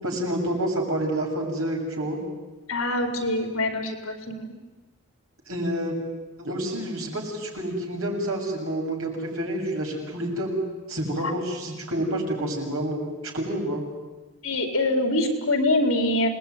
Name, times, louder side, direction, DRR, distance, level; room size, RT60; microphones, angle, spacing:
voice 1, 0.0-2.2 5.5-5.9 6.4-10.6 10.9-13.0 13.3-13.8, right 1 dB, 90° right, 0 dB, 7.3 m, -28 dB
voice 2, 2.7-4.5 11.2-11.3 14.4-16.3, left 1 dB, 75° left, 4 dB, 4.5 m, -24 dB
27.5 x 20.0 x 9.6 m, 1.2 s
head